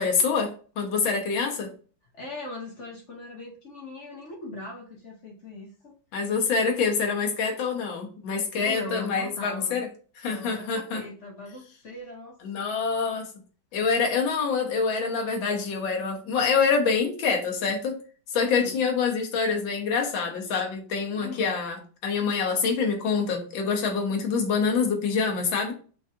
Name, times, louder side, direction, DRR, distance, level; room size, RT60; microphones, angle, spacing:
voice 1, 0.0-1.7 6.1-9.9 10.2-11.0 12.4-13.3 13.7-18.0 18.3-25.7, left 5 dB, 80° left, 2 dB, 1.6 m, -26 dB
voice 2, 2.1-6.0 8.5-9.8 10.2-12.4 13.7-13.8 17.6-17.7 18.4-18.8 21.1-21.5, left 2 dB, 60° left, 0 dB, 0.7 m, -40 dB
6.0 x 2.5 x 2.7 m, 0.39 s
omnidirectional pair, 2.1 m